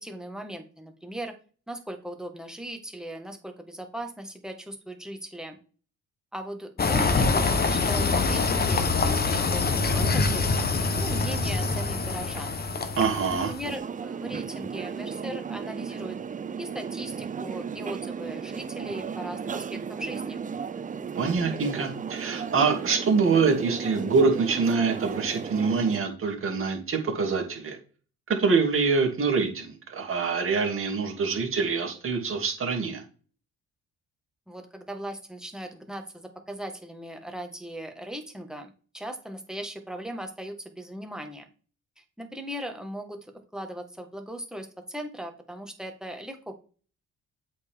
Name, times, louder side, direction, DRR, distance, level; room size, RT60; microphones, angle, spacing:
voice 1, 0.0-1.3 1.7-5.6 6.3-12.5 13.3-16.2 16.6-20.4 34.5-41.5 42.0-46.5, right 1 dB, ahead, 4 dB, 1.5 m, -38 dB
sound 1, 6.8-13.7, left 4 dB, 30° left, 1.1 m, -25 dB
voice 2, 13.0-13.5 21.1-27.8 28.4-33.0, right 4 dB, 45° right, 1 dB, 2.4 m, -25 dB
sound 2, 13.6-26.0, right 6 dB, 25° right, 0.5 m, -35 dB
8.1 x 4.6 x 3.6 m, 0.39 s
cardioid pair, 90°, 30 cm